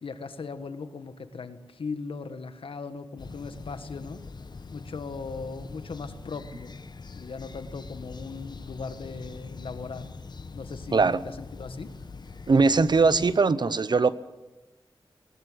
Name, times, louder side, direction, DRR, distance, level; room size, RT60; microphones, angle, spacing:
voice 1, 0.0-4.2 4.7-6.8 7.1-10.1 10.5-11.9, left 4 dB, 85° left, 10 dB, 1.5 m, -38 dB
sound 1, 3.2-13.4, left 4 dB, 50° left, 1.1 m, -43 dB
voice 2, 10.9-11.2 12.5-14.1, right 4 dB, 55° right, 15 dB, 0.9 m, -21 dB
20.0 x 18.5 x 8.0 m, 1.1 s
wide cardioid pair, 100°, 9 cm